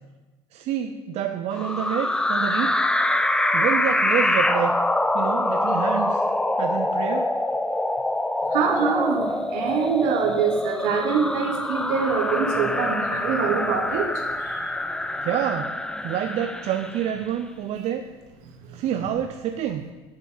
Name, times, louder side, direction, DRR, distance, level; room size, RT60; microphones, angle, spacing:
voice 1, 0.5-2.8 3.5-4.7 5.1-6.2 6.6-7.3 15.2-15.8 16.0-18.0 18.7-19.9, right 9 dB, 55° right, 7 dB, 0.5 m, -27 dB
sound 1, 1.5-17.2, left 1 dB, 5° left, 0.4 m, -25 dB
voice 2, 8.5-14.7 18.7-18.8, right 6 dB, 75° right, 4 dB, 1.4 m, -25 dB
7.4 x 5.9 x 6.3 m, 1.2 s
supercardioid pair, 100°, 13 cm